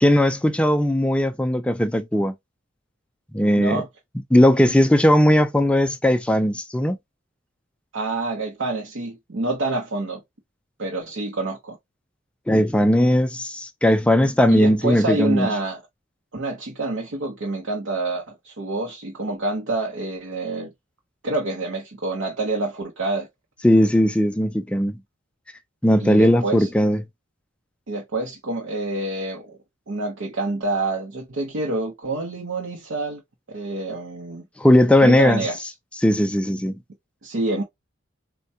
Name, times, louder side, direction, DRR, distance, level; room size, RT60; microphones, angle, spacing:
voice 1, 0.0-2.3 3.3-3.8 4.3-7.0 12.5-15.5 23.6-25.0 25.8-27.0 34.6-35.4 36.0-36.7, left 1 dB, 5° left, 0.3 m, -18 dB
voice 2, 3.5-3.9 7.9-10.2 10.8-11.8 14.5-15.8 16.3-20.7 21.2-23.3 26.0-26.7 27.9-29.6 29.9-33.2 33.5-34.4 35.0-35.7 37.2-37.6, right 2 dB, 70° right, 0.7 m, -27 dB
4.3 x 2.2 x 2.7 m
head